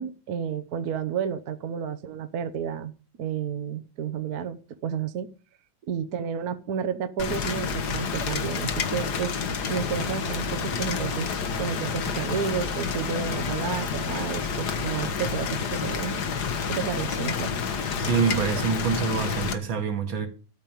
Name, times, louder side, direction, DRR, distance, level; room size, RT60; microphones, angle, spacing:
voice 1, 0.0-2.9 3.2-5.3 5.9-9.4 9.7-16.2 16.7-17.5, right 7 dB, 55° right, 1.3 m, -31 dB
Rain, 7.2-19.5, left 5 dB, 60° left, 1.8 m, -29 dB
voice 2, 18.0-20.3, right 6 dB, 80° right, 2.9 m, -26 dB
13.5 x 5.4 x 9.1 m
omnidirectional pair, 2.1 m